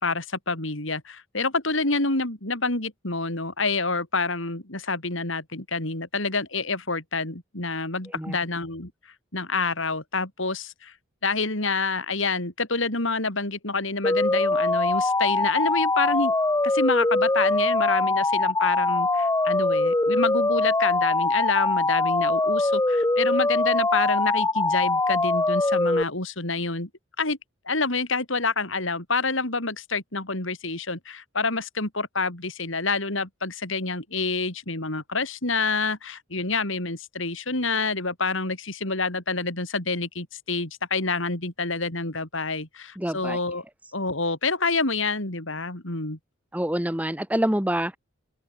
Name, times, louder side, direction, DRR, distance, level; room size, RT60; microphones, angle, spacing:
voice 1, 0.0-8.9 9.3-10.9 11.2-16.3 16.6-26.9 27.2-27.4 27.7-43.6 43.9-46.2, left 3 dB, 65° left, 4.3 m, -27 dB
sound 1, 14.0-26.0, left 2 dB, 15° left, 0.8 m, -23 dB
voice 2, 43.0-43.4 46.5-48.0, right 1 dB, 5° right, 1.4 m, -26 dB
open air
head